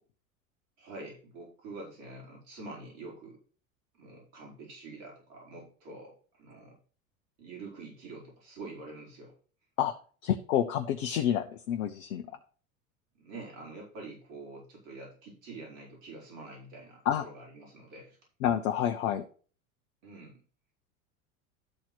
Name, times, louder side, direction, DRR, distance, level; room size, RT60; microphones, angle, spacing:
voice 1, 0.8-3.4 3.9-6.8 7.4-9.3 13.2-18.2 20.0-20.4, right 3 dB, 60° right, -2 dB, 5.0 m, -46 dB
voice 2, 10.2-12.3 17.0-17.2 18.4-19.2, left 10 dB, 65° left, 5 dB, 1.1 m, -28 dB
12.0 x 4.4 x 6.1 m, 0.40 s
hypercardioid pair, 80°, 42 cm